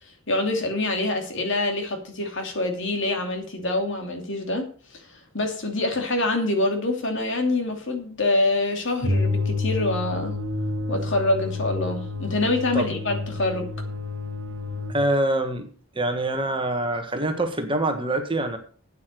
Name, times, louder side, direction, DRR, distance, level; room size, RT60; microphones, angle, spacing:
voice 1, 0.3-4.7 4.9-10.3 10.9-13.6, left 2 dB, 60° left, 4 dB, 2.7 m, -25 dB
sound 1, 9.0-15.0, left 3 dB, 65° right, 1.5 m, -29 dB
voice 2, 14.9-15.7 15.9-18.6, right 1 dB, 25° right, 6 dB, 1.6 m, -25 dB
8.8 x 8.5 x 6.5 m, 0.42 s
head